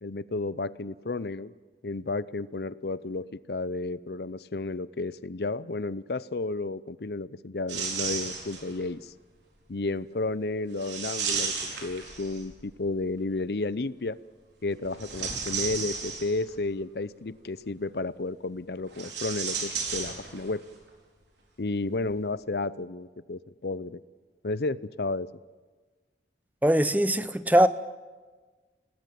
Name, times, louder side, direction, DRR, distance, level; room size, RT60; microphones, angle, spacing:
voice 1, 0.0-1.5 1.8-9.1 9.7-14.2 14.6-20.6 21.6-24.0 24.4-25.3, left 3 dB, 65° left, 0.7 m, -32 dB
sound 1, 7.7-8.8 10.8-12.6 14.8-16.6 18.9-20.6 20.9-21.0 22.0-22.1, right 5 dB, 85° right, 4.5 m, -33 dB
voice 2, 26.6-27.7, right 1 dB, 10° right, 0.6 m, -21 dB
27.5 x 19.0 x 7.7 m
head